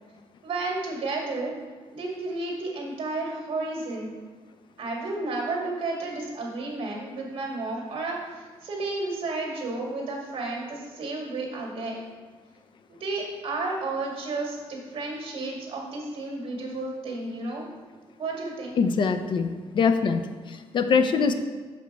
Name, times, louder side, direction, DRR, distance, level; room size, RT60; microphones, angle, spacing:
voice 1, 0.4-1.5 1.9-4.1 4.8-12.0 12.9-17.7 18.2-18.7, right 2 dB, 55° right, -1 dB, 1.9 m, -32 dB
voice 2, 18.8-21.3, left 5 dB, 50° left, 9 dB, 0.5 m, -23 dB
6.6 x 5.1 x 4.6 m, 1.4 s
cardioid pair, 140°, 11 cm